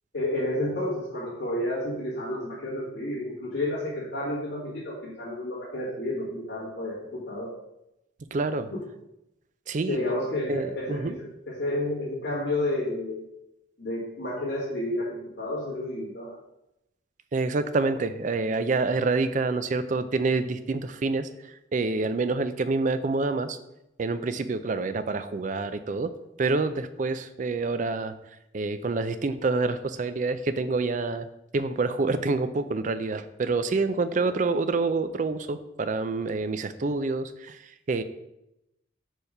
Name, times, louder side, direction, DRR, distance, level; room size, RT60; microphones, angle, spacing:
voice 1, 0.1-7.5 9.9-13.2 13.8-16.4 34.1-34.4, left 1 dB, 65° left, -10 dB, 1.9 m, -31 dB
voice 2, 8.3-8.7 9.7-10.0 10.5-11.1 17.3-21.3 21.7-23.6 24.0-26.1 26.4-28.1 28.5-31.3 31.5-37.6 37.9-38.0, right 3 dB, 40° right, 11 dB, 0.4 m, -27 dB
5.0 x 4.6 x 5.5 m, 0.87 s
head